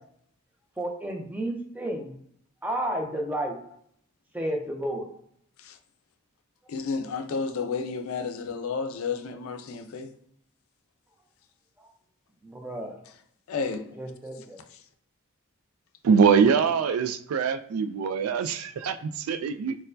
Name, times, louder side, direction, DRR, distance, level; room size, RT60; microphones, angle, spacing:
voice 1, 0.8-2.1 2.6-3.6 4.3-5.1 12.4-13.0 13.7-14.6, right 1 dB, 10° right, 0.5 m, -32 dB
voice 2, 6.7-10.1 13.5-13.9, left 5 dB, 80° left, 0.4 m, -31 dB
voice 3, 16.0-19.8, right 6 dB, 85° right, 0.3 m, -23 dB
4.3 x 2.1 x 2.6 m
head